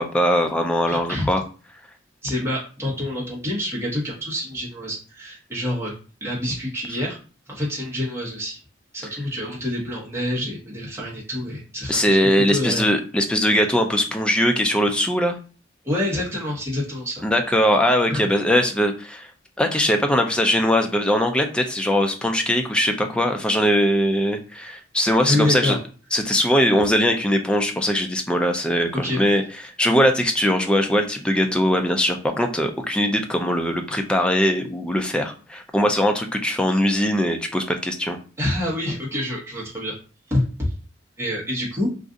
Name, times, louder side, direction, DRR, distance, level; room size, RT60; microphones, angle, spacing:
voice 1, 0.0-1.4 11.9-15.4 17.2-19.3 19.6-25.8 26.1-29.4 29.8-38.2, equal, 5° left, 4 dB, 0.3 m, -21 dB
voice 2, 0.9-1.3 2.2-5.9 6.2-7.2 7.5-8.6 8.9-12.9 15.8-17.2 18.1-18.3 25.3-25.8 28.9-29.2 38.4-40.0 40.3-40.7 41.2-41.9, left 1 dB, 15° right, -5 dB, 1.0 m, -27 dB
2.6 x 2.4 x 3.6 m, 0.37 s
head